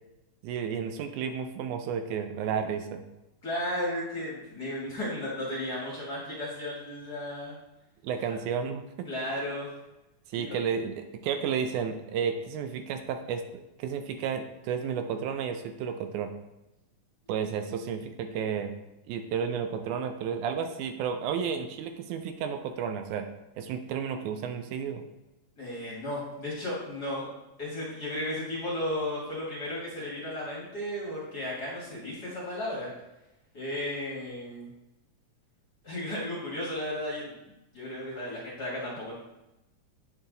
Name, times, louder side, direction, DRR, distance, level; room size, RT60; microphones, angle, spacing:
voice 1, 0.4-3.0 8.0-9.1 10.3-16.3 17.3-18.7 19.1-23.3 23.6-25.0, right 7 dB, 80° right, 7 dB, 1.9 m, -32 dB
voice 2, 3.4-7.5 9.1-9.7 10.3-10.5 25.6-27.3 27.6-32.9 33.5-34.7 35.8-39.2, left 1 dB, 40° left, -6 dB, 1.6 m, -34 dB
8.5 x 4.6 x 3.8 m, 0.96 s
omnidirectional pair, 3.6 m